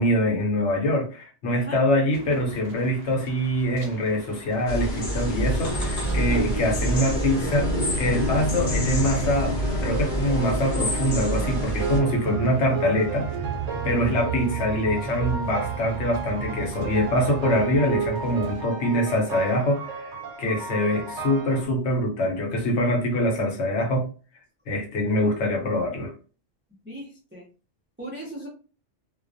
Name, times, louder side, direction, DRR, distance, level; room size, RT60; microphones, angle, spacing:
voice 1, 0.0-9.6 9.8-13.3 13.8-20.1 20.4-24.1 24.7-26.1, left 1 dB, 75° left, 2 dB, 1.0 m, -24 dB
sound 1, 2.1-18.6, right 5 dB, 65° right, 0.8 m, -37 dB
sound 2, 4.7-12.0, equal, 50° left, 0.8 m, -27 dB
sound 3, 5.6-21.7, right 3 dB, 90° right, 0.9 m, -33 dB
voice 2, 13.8-14.2 26.8-27.4 28.0-28.5, right 1 dB, 15° right, -4 dB, 0.4 m, -37 dB
2.2 x 2.2 x 2.5 m, 0.37 s
omnidirectional pair, 1.2 m